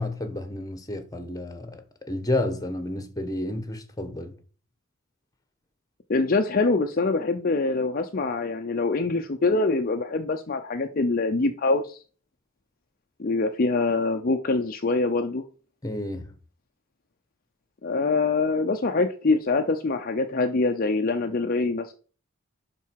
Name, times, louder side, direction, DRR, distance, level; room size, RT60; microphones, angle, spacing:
voice 1, 0.0-4.3 15.8-16.3, left 1 dB, 15° left, 1.2 m, -31 dB
voice 2, 6.1-12.0 13.2-15.4 17.8-21.9, left 3 dB, 45° left, 0.6 m, -24 dB
11.5 x 4.5 x 4.7 m
head